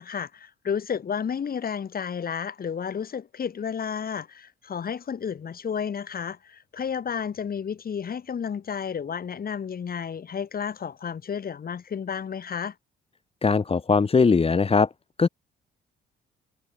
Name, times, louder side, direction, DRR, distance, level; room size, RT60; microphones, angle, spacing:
voice 1, 0.0-12.7, left 7 dB, 50° left, 4.0 m, -32 dB
voice 2, 13.4-14.9 15.2-15.3, left 4 dB, 30° left, 1.6 m, -20 dB
cardioid pair, 90°, 20 cm